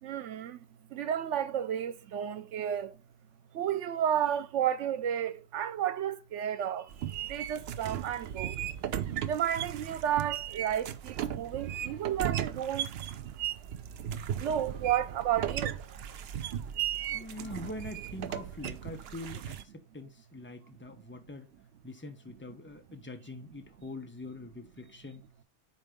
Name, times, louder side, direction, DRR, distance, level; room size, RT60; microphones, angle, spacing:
voice 1, 0.0-3.0 3.5-8.6 9.3-12.9 14.4-15.8, right 10 dB, 85° right, 1.0 m, -32 dB
sound 1, 6.9-19.6, right 10 dB, 65° right, 0.8 m, -36 dB
voice 2, 17.1-21.5 21.8-25.2, left 2 dB, 10° left, 0.9 m, -44 dB
5.3 x 4.5 x 5.1 m
omnidirectional pair, 1.2 m